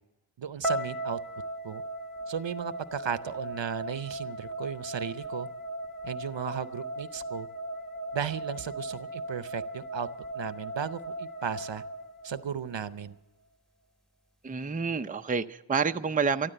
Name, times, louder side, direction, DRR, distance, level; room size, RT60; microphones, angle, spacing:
voice 1, 0.4-1.2 1.6-1.8 2.3-5.5 6.0-7.5 8.1-10.1 10.3-11.8 12.2-13.1, right 8 dB, 70° right, 0.7 m, -35 dB
sound 1, 0.6-12.8, right 1 dB, ahead, 1.6 m, -37 dB
voice 2, 14.4-16.5, right 5 dB, 20° right, 0.5 m, -28 dB
14.0 x 12.5 x 7.9 m
wide cardioid pair, 45°, 46 cm